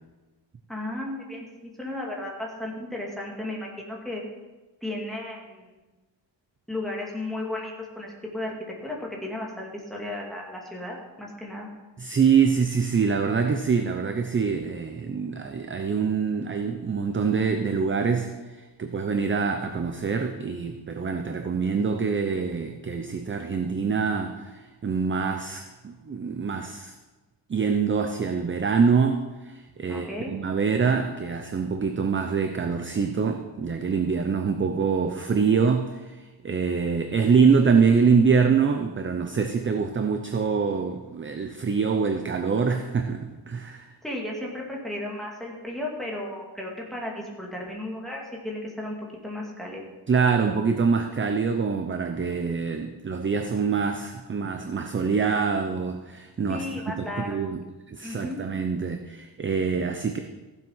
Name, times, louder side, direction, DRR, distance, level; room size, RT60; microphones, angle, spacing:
voice 1, 0.7-4.2 4.8-5.8 6.7-8.5 8.8-11.7 29.9-30.3 44.0-49.0 49.2-49.9 56.5-57.5 58.0-58.4, left 1 dB, ahead, -3 dB, 2.3 m, -34 dB
voice 2, 12.0-18.3 18.6-26.9 27.5-43.8 50.1-57.6 57.9-60.2, right 5 dB, 25° right, 6 dB, 0.6 m, -25 dB
15.0 x 7.6 x 5.7 m, 1.2 s
wide cardioid pair, 175°, 46 cm